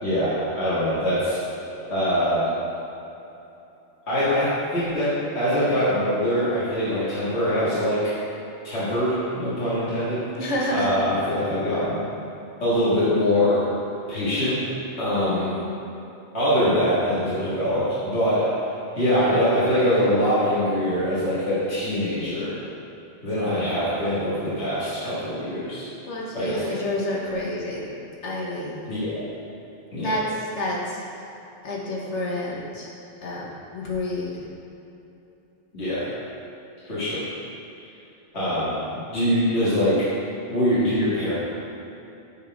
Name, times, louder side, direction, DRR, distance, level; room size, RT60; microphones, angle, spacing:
voice 1, 0.0-1.4 1.9-2.5 4.1-8.1 8.6-10.2 10.7-12.0 12.6-13.7 14.1-14.6 15.0-15.5 16.3-18.5 18.9-22.6 23.2-25.9 26.3-26.7 28.9-29.2 29.9-30.1 35.7-36.1 36.8-37.3 38.3-40.1 40.4-41.3, equal, 70° left, -12 dB, 2.1 m, -23 dB
voice 2, 10.4-10.9 15.1-15.7 26.1-27.9 28.2-28.8 30.0-31.0 31.6-32.9 33.2-34.4, left 1 dB, 90° left, -3 dB, 1.5 m, -29 dB
8.1 x 4.2 x 4.7 m, 2.9 s
omnidirectional pair, 1.2 m